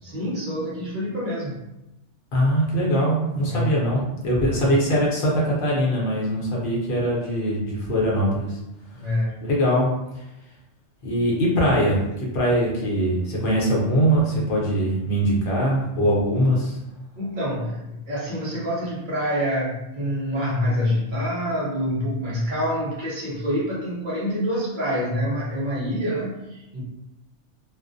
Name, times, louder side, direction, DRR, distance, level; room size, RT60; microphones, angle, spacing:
voice 1, 0.0-1.6 3.4-3.7 4.5-4.7 8.9-9.5 17.2-26.8, equal, 50° right, -6 dB, 0.7 m, -26 dB
voice 2, 2.3-8.6 9.4-9.9 10.1-10.2 11.0-16.8, equal, 55° left, -4 dB, 0.8 m, -22 dB
2.3 x 2.1 x 2.5 m, 0.92 s
omnidirectional pair, 1.2 m